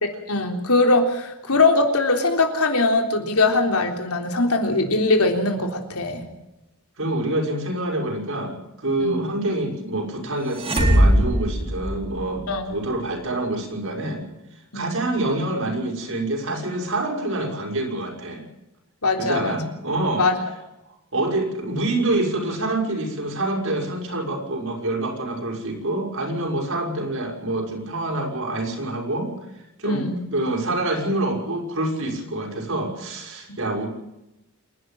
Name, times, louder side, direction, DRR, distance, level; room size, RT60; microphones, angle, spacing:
voice 1, 0.0-6.2 9.0-9.3 12.5-12.7 14.7-14.9 19.0-19.6 20.2-20.4 29.8-30.3 33.5-33.6, left 2 dB, 80° left, 4 dB, 3.7 m, -21 dB
voice 2, 7.0-14.2 14.7-18.4 19.2-20.3 21.1-29.3 29.6-33.9, right 2 dB, 65° right, 2 dB, 6.1 m, -26 dB
sound 1, 10.5-12.5, equal, 25° right, 4.4 m, -19 dB
28.0 x 11.5 x 9.2 m, 0.91 s
head